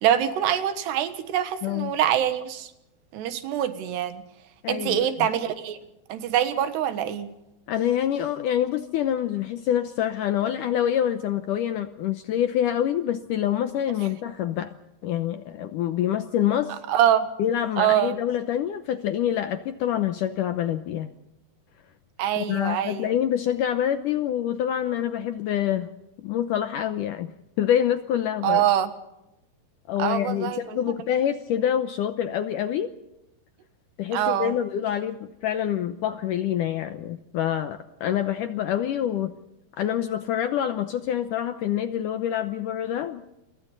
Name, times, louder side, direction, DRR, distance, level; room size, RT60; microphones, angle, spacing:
voice 1, 0.0-2.7 3.1-4.2 4.7-5.8 6.1-7.3 16.9-17.3 17.8-18.2 22.2-23.1 28.4-28.9 30.0-30.8 34.1-34.6, right 10 dB, 85° right, 3.5 m, -24 dB
voice 2, 1.6-1.9 4.6-5.3 7.7-14.7 15.0-16.7 17.4-21.1 22.3-25.9 26.2-27.3 27.6-28.7 29.9-32.9 34.0-39.3 39.7-43.2, left 10 dB, 75° left, 2.0 m, -26 dB
29.0 x 23.5 x 4.0 m
omnidirectional pair, 4.7 m